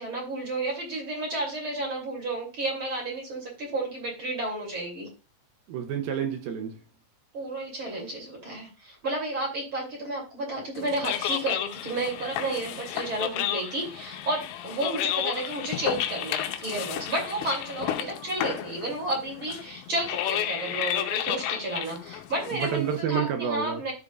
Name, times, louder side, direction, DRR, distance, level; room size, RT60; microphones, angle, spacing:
voice 1, 0.0-5.1 7.3-23.9, right 2 dB, 30° right, 3.1 m, -32 dB
voice 2, 5.7-6.7 22.5-23.8, right 8 dB, 75° right, 2.2 m, -29 dB
sound 1, 10.8-23.0, left 11 dB, 85° left, 2.9 m, -32 dB
14.0 x 5.2 x 2.4 m
omnidirectional pair, 5.2 m